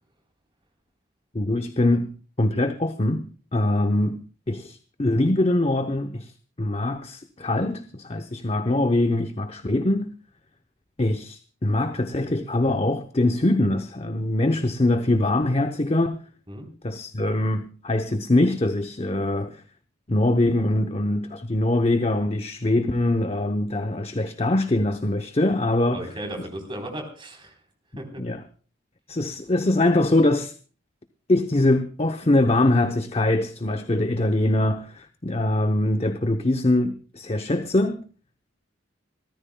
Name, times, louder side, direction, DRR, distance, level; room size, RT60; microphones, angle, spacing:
voice 1, 1.3-6.3 6.6-10.1 11.0-16.2 16.8-19.6 20.1-26.1 28.2-28.4 29.1-30.5 31.3-38.0, left 1 dB, 30° left, 0.8 m, -23 dB
voice 2, 25.9-27.5 28.0-28.2, right 1 dB, 25° right, 3.7 m, -35 dB
27.0 x 14.0 x 2.3 m
head